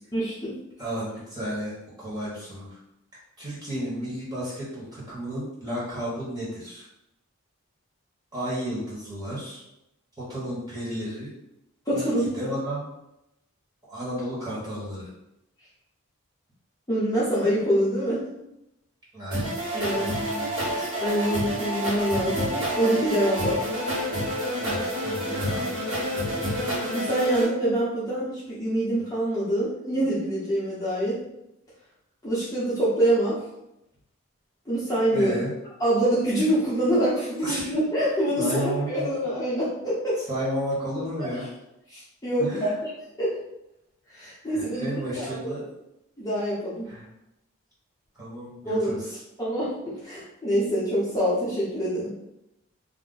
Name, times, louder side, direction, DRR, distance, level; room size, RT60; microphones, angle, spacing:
voice 1, 0.1-0.5 11.9-12.3 16.9-18.2 19.7-20.1 21.0-23.6 26.9-31.2 32.2-33.4 34.7-35.3 35.8-40.2 41.2-41.3 41.9-42.9 43.2-43.4 44.1-44.9 45.1-45.5 46.2-46.9 48.7-49.0 49.4-49.8 50.0-52.1, right 1 dB, 15° left, -10 dB, 0.7 m, -25 dB
voice 2, 0.8-2.8 3.4-6.9 8.3-9.6 10.2-11.3 11.9-12.9 13.9-15.1 19.1-19.5 19.9-20.9 24.6-25.6 35.1-35.5 37.4-37.7 38.4-39.2 40.3-41.5 42.4-42.7 44.4-45.6 46.8-47.1 48.1-49.2, equal, 20° right, -8 dB, 1.1 m, -32 dB
sound 1, 19.3-27.4, equal, 75° right, 1.3 m, -28 dB
2.5 x 2.1 x 3.8 m, 0.87 s
head